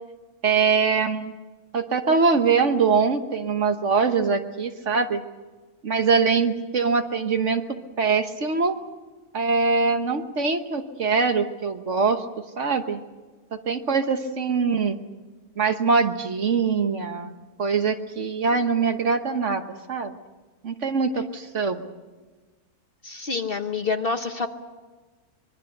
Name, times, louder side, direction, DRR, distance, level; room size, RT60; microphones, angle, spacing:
voice 1, 0.4-1.3 1.7-5.2 5.8-8.8 9.3-12.2 12.6-13.0 13.5-15.0 15.6-19.6 19.9-20.1 20.6-21.9, right 5 dB, 55° right, 7 dB, 1.4 m, -23 dB
voice 2, 23.0-24.5, left 4 dB, 45° left, 7 dB, 1.1 m, -27 dB
25.0 x 21.0 x 6.6 m, 1.3 s
omnidirectional pair, 1.6 m